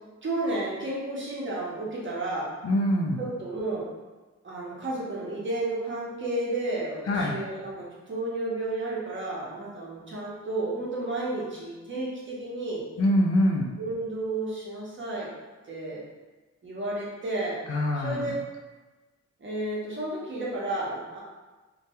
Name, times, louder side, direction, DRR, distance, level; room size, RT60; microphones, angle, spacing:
voice 1, 0.2-2.5 3.2-3.9 4.4-12.8 13.8-15.3 15.7-16.0 16.6-17.6 17.9-18.4 19.4-21.2, right 2 dB, 40° right, -5 dB, 0.8 m, -32 dB
voice 2, 2.6-3.2 7.1-7.3 13.0-13.7 17.7-18.3, left 1 dB, 50° left, -1 dB, 0.4 m, -24 dB
2.3 x 2.1 x 2.8 m, 1.2 s
cardioid pair, 85°, 31 cm